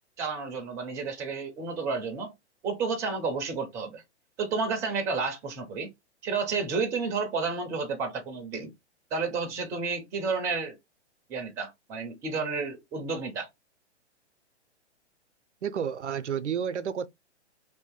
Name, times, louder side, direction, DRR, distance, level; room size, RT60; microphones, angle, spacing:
voice 1, 0.2-2.3 2.6-4.0 4.4-5.9 6.2-8.7 9.1-10.8 11.3-13.5, right 4 dB, 10° right, 0.4 m, -31 dB
voice 2, 15.6-17.1, right 8 dB, 85° right, 0.5 m, -30 dB
2.7 x 2.6 x 3.7 m
figure-of-eight pair, 115°, 35 cm